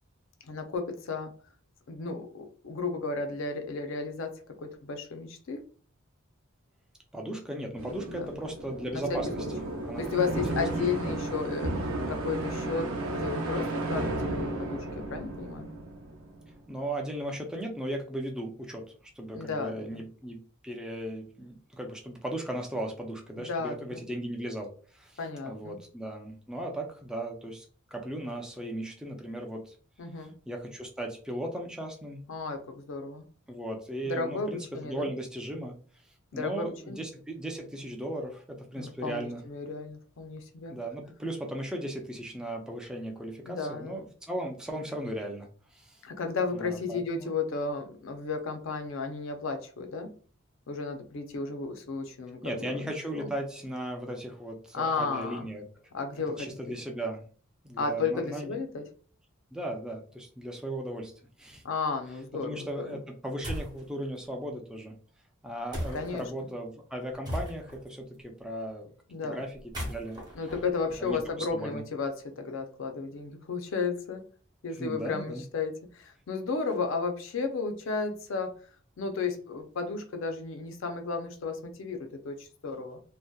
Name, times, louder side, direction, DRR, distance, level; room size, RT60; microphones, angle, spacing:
voice 1, 0.4-1.3 1.9-5.6 8.1-8.3 8.9-9.5 10.0-15.7 19.3-20.0 23.4-24.0 25.2-25.8 30.0-30.3 32.3-33.2 34.0-35.1 36.3-37.0 38.8-40.8 43.4-44.0 46.0-50.2 50.7-52.8 53.1-53.3 54.7-55.5 55.9-56.8 57.8-58.8 61.6-63.0 65.9-66.2 69.1-69.4 70.3-74.2 74.6-78.6 79.0-83.0, left 4 dB, 65° left, 6 dB, 0.4 m, -33 dB
voice 2, 7.1-9.4 9.8-10.4 11.0-11.2 16.7-18.9 19.2-25.2 25.4-27.7 27.9-29.8 30.2-32.2 33.5-35.7 36.3-39.4 40.7-46.0 46.5-47.3 52.4-55.7 56.4-57.2 57.6-58.5 59.5-61.6 62.4-65.0 65.4-68.9 69.2-69.5 69.8-70.2 71.0-71.2 71.5-71.8 74.8-75.4, right 1 dB, 5° right, 1 dB, 0.3 m, -37 dB
sound 1, 7.8-16.6, right 2 dB, 75° right, 0.6 m, -33 dB
sound 2, 63.4-63.8 65.7-66.2 67.2-67.9 69.6-71.5, equal, 20° right, 0.7 m, -37 dB
2.6 x 2.1 x 2.2 m, 0.42 s
head